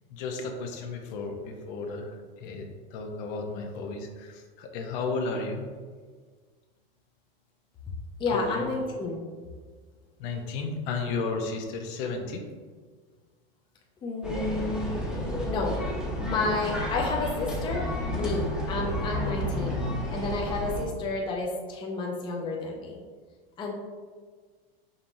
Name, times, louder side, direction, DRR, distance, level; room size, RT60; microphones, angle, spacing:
voice 1, 0.1-5.6 8.3-8.7 10.2-12.4, left 3 dB, 55° left, 3 dB, 0.7 m, -33 dB
voice 2, 8.2-9.2 14.0-15.0 15.4-15.8 16.2-17.8 18.1-19.8 20.1-23.0 23.6-23.7, left 3 dB, 15° left, -1 dB, 0.5 m, -30 dB
sound 1, 14.2-20.8, equal, 5° right, 0.9 m, -31 dB
5.3 x 2.8 x 2.6 m, 1.5 s
supercardioid pair, 120°, 30 cm